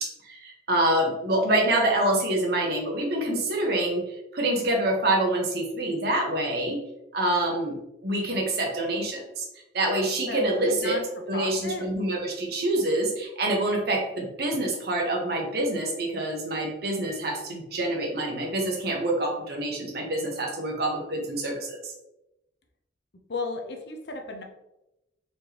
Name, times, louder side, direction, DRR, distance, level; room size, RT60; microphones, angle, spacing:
voice 1, 0.0-4.0 4.3-6.8 7.1-7.7 8.0-9.5 9.7-11.0 11.3-21.9, right 1 dB, 60° right, 1 dB, 1.0 m, -26 dB
voice 2, 10.3-11.0 11.3-11.9 23.3-24.4, left 3 dB, 65° left, 3 dB, 0.6 m, -34 dB
4.3 x 3.3 x 2.9 m, 0.92 s
head